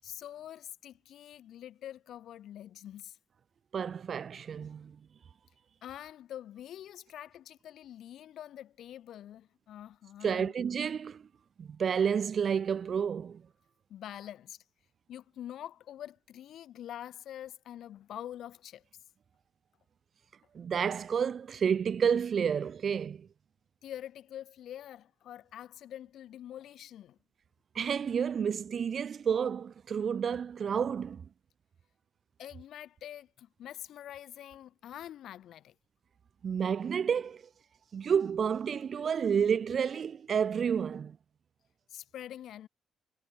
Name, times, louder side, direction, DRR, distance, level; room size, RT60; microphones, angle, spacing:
voice 1, 0.0-3.2 5.8-10.5 13.9-14.6 15.1-18.8 23.8-27.2 32.4-35.7 41.9-42.7, left 11 dB, 75° left, 3.3 m, -45 dB
voice 2, 3.7-5.0 10.2-11.3 11.6-13.4 20.5-23.3 27.7-31.3 36.4-37.4 37.9-41.2, right 7 dB, 50° right, 0.6 m, -30 dB
cardioid pair, 90°, 0 cm